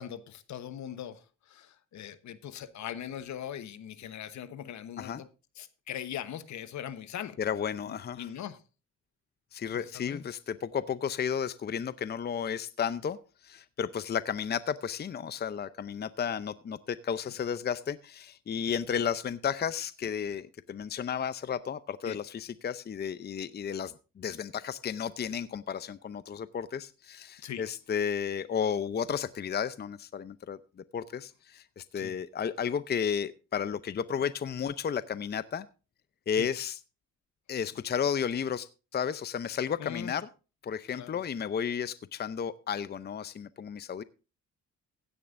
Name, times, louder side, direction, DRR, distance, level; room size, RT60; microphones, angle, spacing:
voice 1, 0.0-5.3 5.5-7.4 7.9-8.6 9.6-10.2 22.0-22.2 27.4-27.7 31.9-32.2 36.3-36.5 39.8-40.1 40.9-41.2, left 10 dB, 65° left, 1.1 m, -41 dB
voice 2, 7.4-8.3 9.5-13.2 13.4-30.6 30.9-35.7 36.3-36.8 37.5-40.3 40.6-44.0, left 7 dB, 35° left, 0.6 m, -33 dB
16.0 x 10.0 x 2.6 m
cardioid pair, 90°, 30 cm